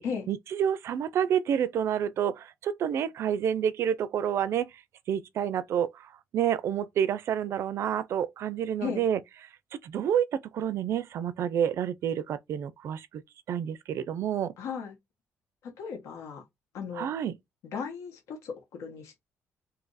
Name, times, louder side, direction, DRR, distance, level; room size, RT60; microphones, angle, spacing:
voice 1, 0.3-4.7 5.1-5.9 6.3-9.2 9.7-13.2 13.5-14.5 16.9-17.3, right 9 dB, 60° right, 0.4 m, -29 dB
voice 2, 14.6-14.9 15.8-16.4 16.7-17.1 17.7-19.2, left 6 dB, 90° left, 1.1 m, -36 dB
2.7 x 2.5 x 3.8 m
cardioid pair, 130°, 5 cm